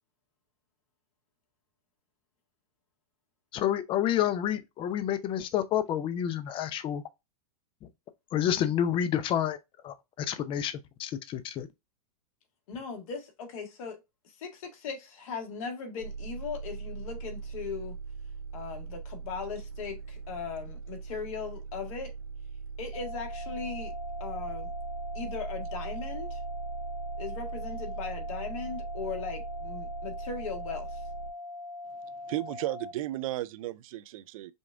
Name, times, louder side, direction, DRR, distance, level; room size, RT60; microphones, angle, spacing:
voice 1, 3.5-7.0 8.3-9.6 9.8-11.7, left 10 dB, 25° left, 0.5 m, -29 dB
voice 2, 12.7-14.0 14.2-18.0 18.5-22.1 22.8-23.9 24.2-24.7 25.1-26.4 27.2-31.0, left 5 dB, 65° left, 1.5 m, -38 dB
sound 1, 16.0-31.3, right 5 dB, 85° right, 1.6 m, -40 dB
sound 2, 22.9-32.9, left 2 dB, 80° left, 0.9 m, -42 dB
voice 3, 32.3-34.5, right 15 dB, 65° right, 0.5 m, -34 dB
5.2 x 2.4 x 3.4 m
hypercardioid pair, 125°, 19 cm